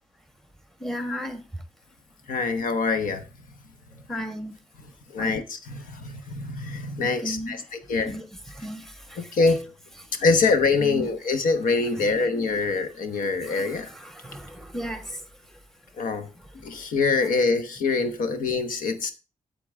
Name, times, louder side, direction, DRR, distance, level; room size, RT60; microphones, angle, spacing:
voice 1, 0.8-1.6 4.1-4.5 5.2-5.3 7.0-9.4 10.0-10.2 10.8-11.1 11.9-12.3 13.1-15.6 16.4-16.6, equal, ahead, 1.4 m, -36 dB
voice 2, 2.3-3.2 5.1-8.1 9.2-9.7 10.2-13.9 16.0-16.3 16.6-19.1, left 4 dB, 80° left, 1.1 m, -24 dB
8.3 x 7.8 x 3.4 m
cardioid pair, 115°, 14 cm